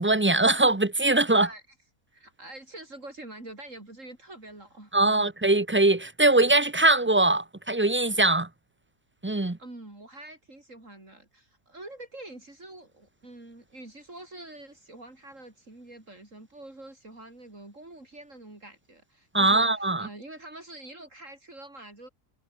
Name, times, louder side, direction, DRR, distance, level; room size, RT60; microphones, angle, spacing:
voice 1, 0.0-1.5 4.9-8.5 9.2-9.6 19.3-20.1, right 2 dB, 10° right, 0.6 m, -22 dB
voice 2, 1.3-1.6 2.1-5.3 9.6-22.1, right 2 dB, 60° right, 6.2 m, -45 dB
omnidirectional pair, 1.5 m